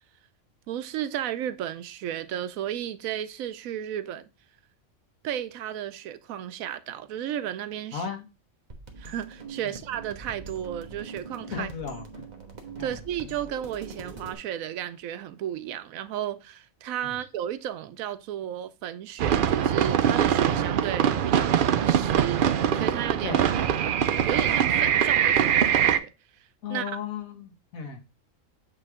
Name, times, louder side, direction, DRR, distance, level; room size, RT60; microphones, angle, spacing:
voice 1, 0.7-4.3 5.2-8.0 9.0-11.7 12.8-23.4 24.3-26.1 26.7-27.0, right 11 dB, 85° right, 1.0 m, -33 dB
voice 2, 7.9-8.3 9.6-9.7 11.5-12.1 12.8-13.0 17.0-17.1 23.2-23.5 26.6-28.0, left 6 dB, 80° left, 1.7 m, -35 dB
sound 1, 8.7-14.3, right 4 dB, 35° right, 1.1 m, -42 dB
sound 2, 19.2-26.0, right 9 dB, 70° right, 0.5 m, -23 dB
8.0 x 3.2 x 4.8 m
omnidirectional pair, 1.4 m